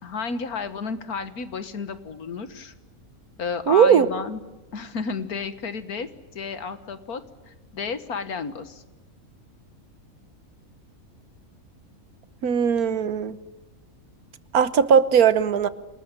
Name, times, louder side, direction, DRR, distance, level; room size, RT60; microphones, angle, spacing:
voice 1, 0.0-2.7 3.4-4.4 4.7-8.8, left 5 dB, 90° left, 11 dB, 2.0 m, -32 dB
voice 2, 3.7-4.1 12.4-13.4 14.5-15.7, right 7 dB, 80° right, 14 dB, 1.6 m, -18 dB
28.0 x 20.0 x 8.9 m, 1.1 s
omnidirectional pair, 1.5 m